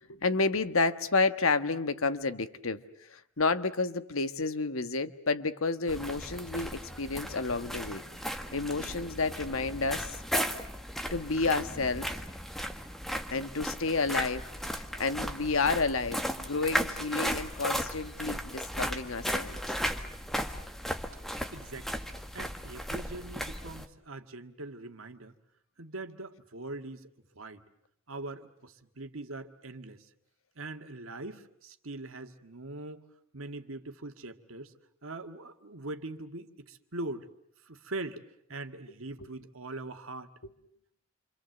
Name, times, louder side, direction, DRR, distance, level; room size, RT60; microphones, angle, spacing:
voice 1, 0.1-6.7 7.0-10.2 11.1-12.1 13.3-19.6 39.2-39.3, left 3 dB, 85° left, 10 dB, 1.4 m, -30 dB
sound 1, 5.9-23.9, equal, ahead, 1.5 m, -36 dB
voice 2, 21.5-21.9 22.3-25.3 25.8-27.1 27.4-27.6 28.1-30.1 30.6-33.0 33.3-34.7 35.0-37.3 37.7-38.2 38.5-40.3, right 2 dB, 80° right, 7 dB, 1.9 m, -42 dB
28.5 x 25.5 x 7.9 m, 0.72 s
head